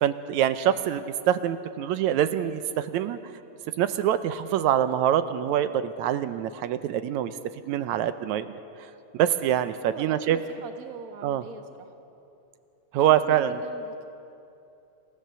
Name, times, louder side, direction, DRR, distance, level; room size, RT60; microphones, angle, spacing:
voice 1, 0.0-3.2 3.8-8.5 8.8-8.9 9.1-10.4 11.2-11.4 12.9-13.6, right 10 dB, 80° right, 11 dB, 2.0 m, -25 dB
voice 2, 9.9-11.9 13.3-13.9, right 6 dB, 45° right, 5 dB, 1.2 m, -42 dB
28.0 x 15.0 x 6.8 m, 2.7 s
omnidirectional pair, 3.3 m